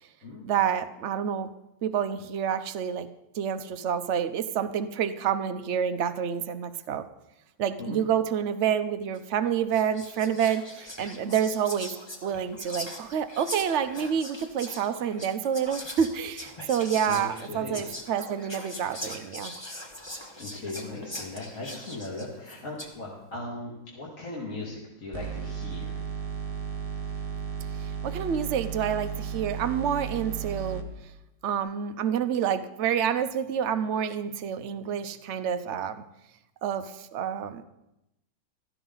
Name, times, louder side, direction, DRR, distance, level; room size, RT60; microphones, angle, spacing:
voice 1, 0.4-1.5 1.8-3.1 3.3-7.1 7.6-11.9 12.2-19.5 27.8-30.8 31.4-36.0 36.6-37.6, right 8 dB, 70° right, 10 dB, 0.6 m, -28 dB
Whispering, 9.1-9.4 9.7-23.0, left 1 dB, 15° left, 1.2 m, -41 dB
voice 2, 17.1-17.8 20.4-26.0, left 2 dB, 45° left, -5 dB, 2.7 m, -38 dB
sound 1, 25.1-30.9, right 7 dB, 25° right, 0.9 m, -34 dB
16.0 x 13.5 x 4.0 m, 0.88 s
omnidirectional pair, 2.1 m